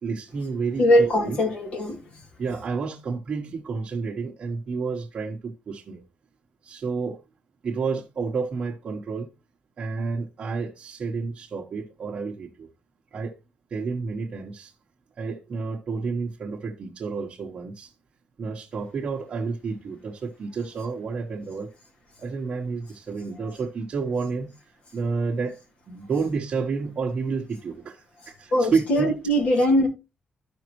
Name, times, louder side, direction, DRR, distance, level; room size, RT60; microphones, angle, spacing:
voice 1, 0.0-1.4 2.4-6.0 6.6-7.2 7.6-9.3 9.8-12.7 13.1-13.4 13.7-14.7 15.2-17.9 18.4-21.7 22.2-24.5 24.9-25.6 25.9-29.1, right 4 dB, 45° right, 1.1 m, -30 dB
voice 2, 0.8-2.0 28.2-29.9, equal, 65° left, 2.7 m, -21 dB
13.0 x 5.2 x 3.0 m
wide cardioid pair, 165°, 2 cm